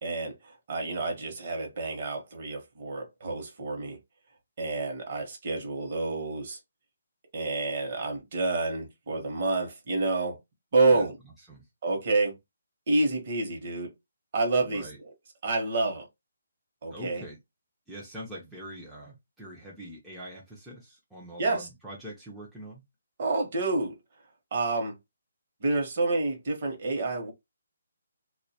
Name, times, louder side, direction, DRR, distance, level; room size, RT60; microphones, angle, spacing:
voice 1, 0.0-4.0 4.6-6.6 7.3-10.4 10.7-11.2 11.8-12.4 12.9-13.9 14.3-15.1 15.4-16.1 16.8-17.3 21.4-21.7 23.2-23.9 24.5-25.0 25.6-27.3, right 3 dB, 40° right, 0.7 m, -28 dB
voice 2, 14.6-15.0 16.9-17.4 17.9-22.8, equal, ahead, 0.4 m, -43 dB
2.2 x 2.1 x 2.7 m
hypercardioid pair, 170°, 0 cm